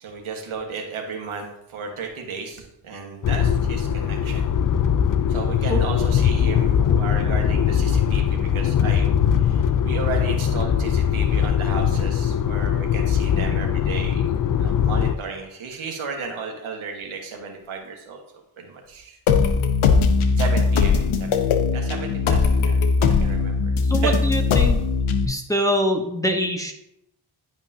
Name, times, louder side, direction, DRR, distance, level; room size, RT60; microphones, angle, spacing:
voice 1, 0.0-4.4 5.3-9.1 9.4-18.2 18.6-19.2 20.4-22.8 23.2-24.2, right 5 dB, 90° right, 1 dB, 1.5 m, -34 dB
sound 1, 3.2-15.1, left 8 dB, 45° left, 0.4 m, -21 dB
sound 2, 19.3-25.3, left 5 dB, 85° left, 0.8 m, -19 dB
voice 2, 23.8-24.8 25.3-26.7, equal, 5° left, 3 dB, 1.0 m, -24 dB
10.5 x 5.4 x 2.8 m, 0.81 s
cardioid pair, 80°, 48 cm